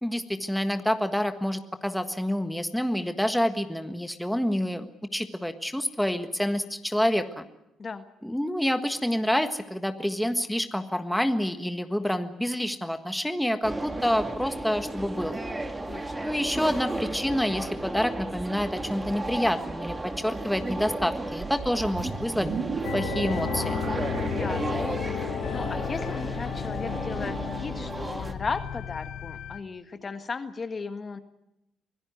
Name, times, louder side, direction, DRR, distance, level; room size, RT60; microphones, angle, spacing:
voice 1, 0.0-7.5 8.2-15.4 16.2-22.5 22.9-23.8, equal, ahead, 8 dB, 1.5 m, -28 dB
sound 1, 13.6-28.3, right 2 dB, 15° right, 2.2 m, -34 dB
voice 2, 15.9-16.3 24.3-31.2, left 4 dB, 35° left, 9 dB, 1.6 m, -36 dB
sound 2, 21.4-25.4, right 6 dB, 60° right, 2.4 m, -35 dB
sound 3, 22.8-29.6, left 10 dB, 70° left, 1.3 m, -33 dB
24.5 x 16.5 x 9.5 m, 0.87 s
cardioid pair, 95°, 0 cm